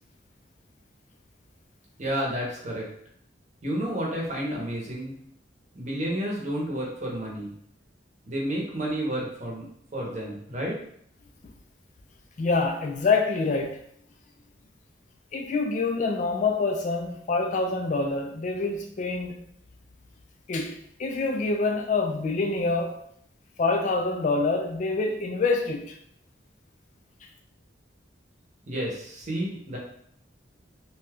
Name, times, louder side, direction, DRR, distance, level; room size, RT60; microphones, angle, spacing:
voice 1, 2.0-2.9 3.6-5.1 5.7-7.5 8.3-9.6 9.9-10.8 28.7-29.8, right 1 dB, 40° right, 0.8 m, -30 dB
voice 2, 12.4-13.8 15.3-19.5 20.5-23.0 23.6-25.9, left 3 dB, 40° left, 0.3 m, -26 dB
2.7 x 2.3 x 3.4 m
head